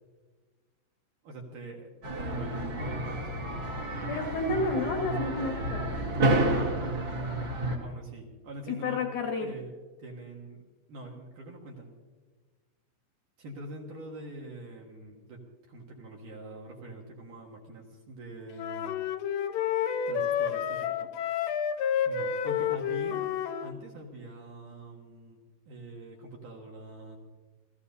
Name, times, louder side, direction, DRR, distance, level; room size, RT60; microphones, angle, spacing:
voice 1, 1.2-3.4 7.8-9.1 9.4-9.7 10.0-10.6 10.9-11.9 13.4-15.4 15.7-19.0 20.1-21.1 22.0-23.3 23.6-25.4 25.7-27.2, right 1 dB, 55° right, -1 dB, 2.7 m, -44 dB
sound 1, 2.0-7.8, right 1 dB, 40° right, 2.2 m, -30 dB
voice 2, 4.1-6.1 8.7-9.6, left 3 dB, 65° left, 2 dB, 2.7 m, -31 dB
sound 2, 18.6-23.7, left 8 dB, 80° left, 2.9 m, -30 dB
29.0 x 16.0 x 2.8 m, 1.3 s
omnidirectional pair, 5.2 m